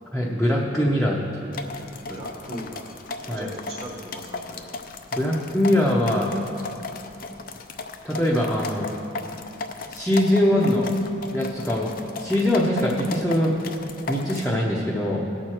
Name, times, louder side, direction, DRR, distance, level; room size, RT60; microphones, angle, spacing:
voice 1, 0.1-1.5 3.3-3.5 5.2-6.3 8.0-8.9 9.9-10.9 11.3-11.9 12.2-13.6 14.1-15.2, left 1 dB, 5° left, -6 dB, 0.8 m, -22 dB
sound 1, 1.5-14.5, left 3 dB, 45° left, 0.5 m, -36 dB
voice 2, 2.1-2.9 3.2-4.7, equal, 20° right, -6 dB, 1.1 m, -38 dB
17.0 x 6.4 x 4.4 m, 2.8 s
head